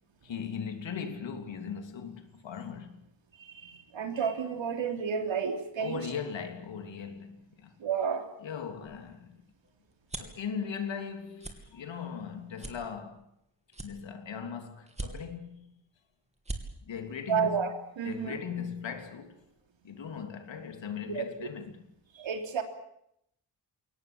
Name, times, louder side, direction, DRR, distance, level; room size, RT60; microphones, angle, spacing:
voice 1, 0.2-3.0 5.8-7.7 8.4-9.4 10.2-13.3 13.8-15.6 16.9-17.6 18.0-19.4 19.8-21.9, left 7 dB, 75° left, 3.2 m, -39 dB
voice 2, 3.4-6.1 7.8-8.3 17.3-18.4 21.1-21.3 22.1-22.6, right 6 dB, 85° right, 3.4 m, -31 dB
sound 1, 8.8-10.4 10.9-11.1 11.4-11.6 12.1-12.2 12.6-13.4 13.7-14.4 14.9-15.5 16.0-16.1 16.3-16.6, right 2 dB, 15° right, 2.8 m, -40 dB
22.0 x 18.5 x 8.8 m
wide cardioid pair, 140°, 45 cm